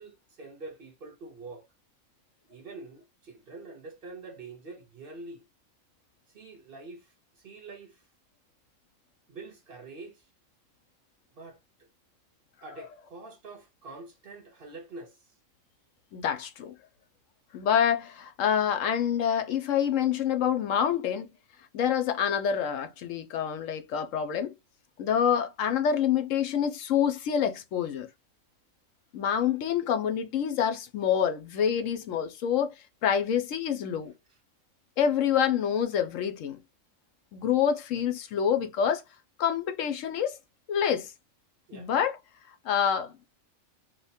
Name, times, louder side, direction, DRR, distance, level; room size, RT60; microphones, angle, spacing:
voice 1, 0.0-1.7 2.5-5.4 6.3-8.0 9.3-10.3 11.4-11.6 12.6-15.3 34.3-34.4 41.7-41.9, right 3 dB, 50° right, 0.8 m, -45 dB
voice 2, 16.1-16.8 17.5-21.3 21.7-24.5 25.0-28.1 29.1-32.7 33.0-34.1 35.0-36.6 37.3-39.0 39.4-40.4 40.7-41.1 41.7-42.2 42.6-43.2, left 8 dB, 75° left, 1.0 m, -27 dB
2.8 x 2.2 x 4.0 m
omnidirectional pair, 1.4 m